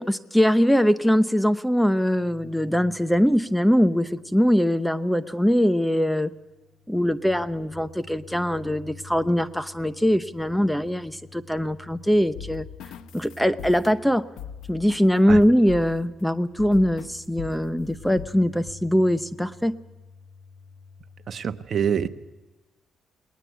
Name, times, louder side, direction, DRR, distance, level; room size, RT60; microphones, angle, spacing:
voice 1, 0.0-6.3 6.9-12.6 13.1-14.2 14.7-19.7, equal, ahead, 13 dB, 0.8 m, -22 dB
sound 1, 2.1-21.3, left 3 dB, 40° left, 5.7 m, -49 dB
sound 2, 12.3-16.1 16.6-17.1 17.4-18.3 18.7-18.8, left 10 dB, 85° left, 1.1 m, -40 dB
voice 2, 21.3-22.1, right 7 dB, 50° right, 10 dB, 1.1 m, -25 dB
19.5 x 19.5 x 8.3 m, 1.1 s
cardioid pair, 90°, 0 cm